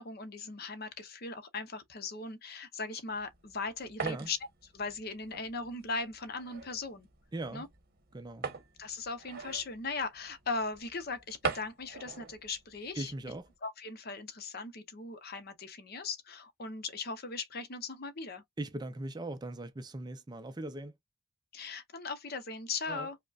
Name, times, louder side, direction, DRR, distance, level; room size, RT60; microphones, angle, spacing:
voice 1, 0.0-4.4 4.7-7.1 7.5-7.7 8.8-13.1 13.6-18.4 21.5-23.2, left 4 dB, 45° left, 0.7 m, -39 dB
sound 1, 3.1-13.5, right 4 dB, 45° right, 0.9 m, -43 dB
voice 2, 4.0-4.3 7.3-7.7 8.1-8.5 13.0-13.5 18.6-20.9 22.9-23.1, right 2 dB, 20° right, 0.4 m, -39 dB
5.0 x 2.1 x 2.3 m
head